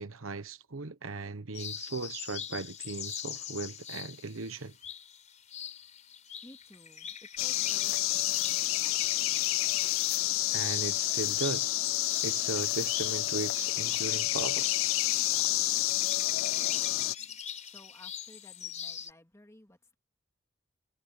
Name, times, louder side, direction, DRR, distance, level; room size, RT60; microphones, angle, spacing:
voice 1, 0.0-4.7 10.5-11.7 12.2-14.7, right 3 dB, 75° right, 1.1 m, -37 dB
sound 1, 1.5-19.1, left 8 dB, 35° left, 4.8 m, -42 dB
voice 2, 6.4-9.4 16.5-17.4 17.7-20.0, left 1 dB, 15° left, 2.5 m, -57 dB
sound 2, 7.4-17.1, left 17 dB, 70° left, 0.3 m, -29 dB
head